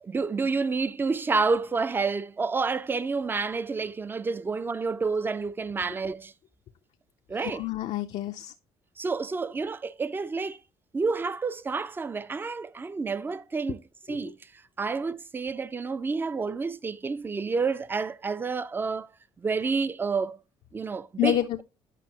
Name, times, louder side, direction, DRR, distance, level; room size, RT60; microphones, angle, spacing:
voice 1, 0.0-6.3 7.3-7.6 9.0-10.6 10.9-13.8 14.1-14.4 14.8-19.1 19.4-20.4 20.7-21.4, right 4 dB, 15° right, 0.3 m, -29 dB
voice 2, 7.4-8.5 14.1-14.3 21.2-21.6, left 13 dB, 65° left, 0.4 m, -29 dB
9.1 x 5.3 x 2.8 m
cardioid pair, 125°, 12 cm